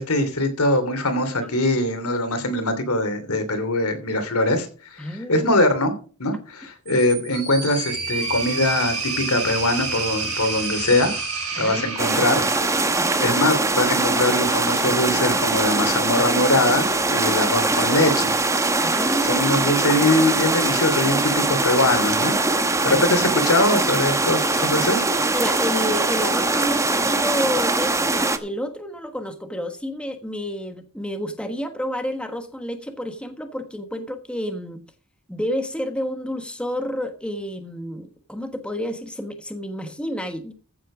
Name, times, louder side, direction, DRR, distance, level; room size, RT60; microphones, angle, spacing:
voice 1, 0.0-5.9 6.2-11.2 11.6-12.4 12.8-12.9 13.2-18.3 19.2-25.1, left 1 dB, 75° left, 9 dB, 2.8 m, -22 dB
voice 2, 5.0-5.5 11.5-11.8 12.3-12.4 12.7-13.4 18.8-19.5 22.9-23.1 25.3-34.8 35.3-40.5, equal, 5° left, 7 dB, 1.3 m, -30 dB
sound 1, 6.9-13.1, right 4 dB, 75° right, 6.3 m, -29 dB
sound 2, 12.0-28.4, right 2 dB, 15° right, 1.0 m, -22 dB
14.5 x 7.8 x 5.0 m, 0.39 s
head